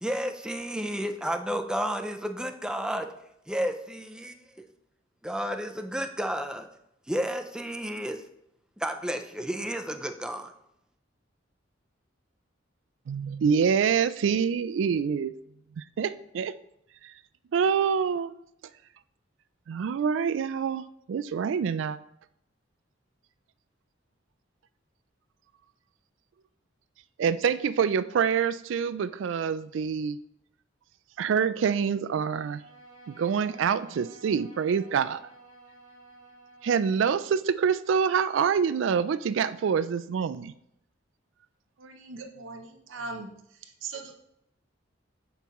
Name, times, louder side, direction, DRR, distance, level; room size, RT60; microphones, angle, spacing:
voice 1, 0.0-3.1 3.5-4.7 5.2-6.7 7.1-8.2 8.8-10.5, equal, 5° right, 6 dB, 0.4 m, -32 dB
voice 2, 13.1-15.3 15.8-16.5 17.0-17.1 17.5-18.3 19.7-22.0 27.2-30.2 31.2-32.6 33.1-35.2 36.6-40.5, right 6 dB, 70° right, 15 dB, 0.3 m, -26 dB
Bowed string instrument, 32.3-37.2, right 2 dB, 70° left, 1.7 m, -53 dB
voice 3, 41.8-43.3 43.8-44.2, right 4 dB, 90° right, 5 dB, 0.7 m, -39 dB
6.9 x 5.3 x 3.1 m, 0.76 s
head